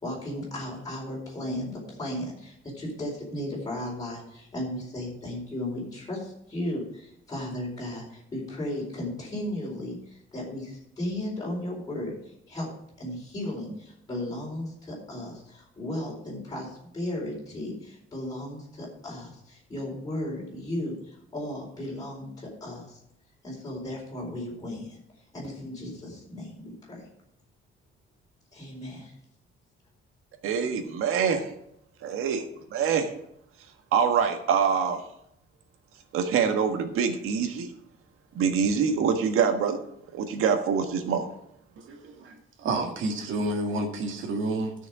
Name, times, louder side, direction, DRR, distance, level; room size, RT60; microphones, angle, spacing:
voice 1, 0.0-12.7 13.0-23.0 23.4-25.0 25.3-27.1 28.5-29.1, left 1 dB, 20° left, -5 dB, 4.4 m, -35 dB
voice 2, 30.4-31.5 32.0-32.4 32.7-33.1 33.9-35.0 36.1-37.7 38.3-39.8 40.1-41.3, right 6 dB, 85° right, 6 dB, 1.5 m, -25 dB
voice 3, 41.9-44.7, right 2 dB, 65° right, 2 dB, 1.9 m, -30 dB
14.0 x 6.4 x 4.8 m, 0.76 s
cardioid pair, 160°, 21 cm